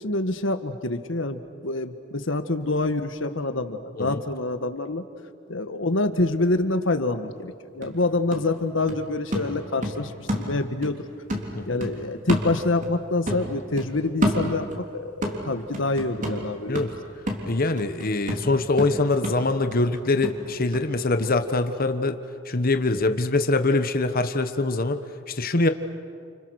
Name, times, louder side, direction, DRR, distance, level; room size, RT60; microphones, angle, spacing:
voice 1, 0.0-5.0 5.5-11.0 11.7-16.9, left 2 dB, 70° left, 9 dB, 1.6 m, -26 dB
sound 1, 7.4-7.5 7.8-11.0 11.3-13.0 13.3-14.9 15.2-20.9 21.2-21.3, equal, 40° right, 3.7 m, -30 dB
voice 2, 17.5-22.2 22.5-25.0 25.3-25.7, left 2 dB, 50° left, 8 dB, 1.3 m, -23 dB
30.0 x 29.5 x 6.5 m, 2.2 s
head